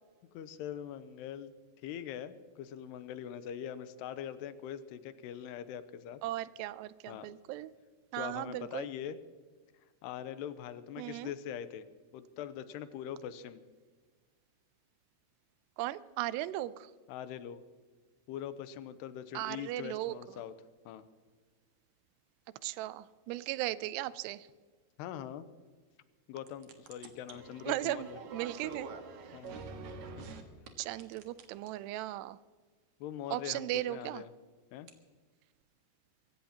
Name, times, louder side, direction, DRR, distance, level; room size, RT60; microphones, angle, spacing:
voice 1, 0.3-1.5 1.8-6.2 7.1-7.3 8.1-9.2 10.0-11.9 12.1-13.6 17.1-17.6 18.3-20.5 20.9-21.1 25.0-25.5 26.3-28.2 29.3-29.7 30.2-30.3 33.0-34.3 34.7-34.9, left 10 dB, 90° left, 12 dB, 2.8 m, -42 dB
voice 2, 6.2-7.7 8.1-8.9 11.0-11.3 15.8-16.9 19.3-20.2 22.6-24.5 27.6-28.9 30.8-32.4 33.3-34.2, right 15 dB, 85° right, 16 dB, 2.7 m, -37 dB
sound 1, 26.5-30.4 30.7-31.7 34.9-35.0, right 4 dB, 60° right, 2.2 m, -46 dB
24.0 x 16.0 x 2.9 m, 1.5 s
omnidirectional pair, 4.7 m